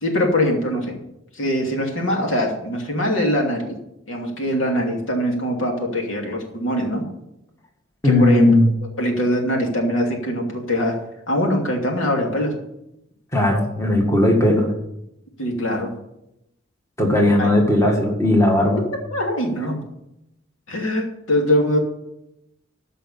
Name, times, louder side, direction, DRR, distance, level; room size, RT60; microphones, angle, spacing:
voice 1, 0.0-0.9 1.3-3.8 4.1-7.0 8.0-8.5 9.0-10.9 11.3-12.5 15.4-15.9 17.4-17.5 19.1-19.8 20.7-21.8, equal, 85° left, 1 dB, 2.8 m, -22 dB
voice 2, 8.0-8.7 13.3-14.7 17.0-18.8, left 1 dB, 15° left, 1 dB, 1.8 m, -17 dB
14.0 x 5.6 x 7.1 m, 0.84 s
head